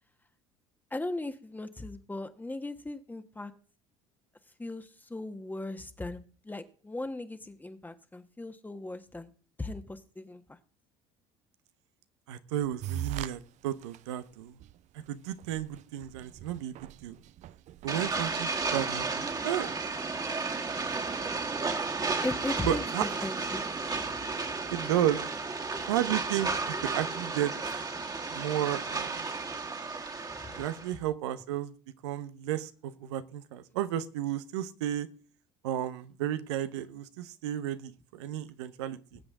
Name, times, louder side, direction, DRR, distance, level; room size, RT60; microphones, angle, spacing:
voice 1, 0.9-3.5 4.6-9.3 9.6-10.6 22.2-23.6 24.0-24.1 30.4-30.6, left 2 dB, 10° left, 8 dB, 1.4 m, -38 dB
voice 2, 12.3-14.6 15.1-17.2 17.8-19.7 22.6-23.1 24.7-25.3 25.9-27.5 28.3-29.2 30.6-31.7 32.0-35.1 35.6-39.2, right 11 dB, 80° right, 13 dB, 0.9 m, -33 dB
sound 1, 12.8-13.3 13.8-14.0 14.6-14.7 15.0-15.1 15.4-19.1, right 12 dB, 55° right, 0.6 m, -40 dB
sound 2, 17.9-30.9, right 4 dB, 25° right, 2.0 m, -33 dB
20.5 x 7.9 x 3.7 m, 0.40 s
hypercardioid pair, 70°, 14 cm